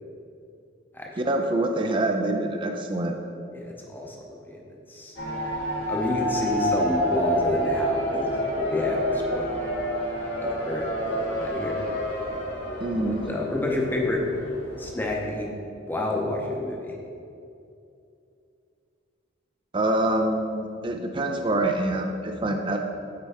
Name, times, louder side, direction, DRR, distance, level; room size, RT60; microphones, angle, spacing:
voice 1, 1.2-3.2 12.8-13.3 19.7-22.8, right 1 dB, 25° right, 4 dB, 0.4 m, -25 dB
voice 2, 3.5-4.6 4.9-5.2 5.9-8.3 8.6-9.6 10.4-11.8 13.3-14.2 14.8-15.5 15.9-17.0, left 2 dB, 10° left, -1 dB, 0.7 m, -29 dB
sound 1, 5.2-15.3, equal, 75° left, 1.6 m, -29 dB
8.4 x 4.6 x 3.5 m, 2.6 s
head